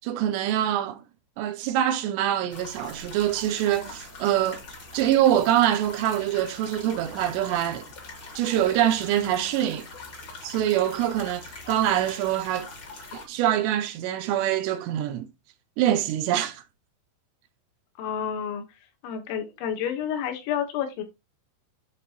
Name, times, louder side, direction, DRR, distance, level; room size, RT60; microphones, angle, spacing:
voice 1, 0.0-1.0 1.4-4.6 4.9-7.9 8.4-9.9 10.4-12.7 13.1-15.3 15.8-16.6, right 11 dB, 85° right, 2.6 m, -24 dB
sound 1, 2.5-13.2, left 3 dB, 45° left, 1.5 m, -43 dB
voice 2, 18.0-18.6 19.0-21.0, left 8 dB, 80° left, 3.6 m, -29 dB
11.5 x 4.0 x 2.9 m
omnidirectional pair, 5.3 m